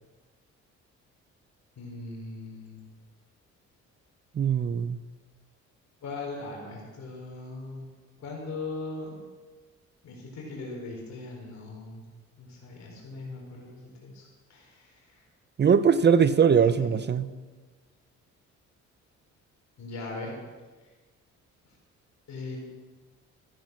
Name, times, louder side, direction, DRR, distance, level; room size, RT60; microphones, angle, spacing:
voice 1, 1.8-2.8 6.0-7.9 8.2-9.2 10.0-12.1 12.4-14.9 16.6-17.4 19.8-20.4 22.3-22.6, left 3 dB, 65° left, -2 dB, 4.7 m, -39 dB
voice 2, 4.4-5.0 15.6-17.3, right 7 dB, 35° right, 14 dB, 0.6 m, -21 dB
15.0 x 9.3 x 6.3 m, 1.3 s
cardioid pair, 90°, 30 cm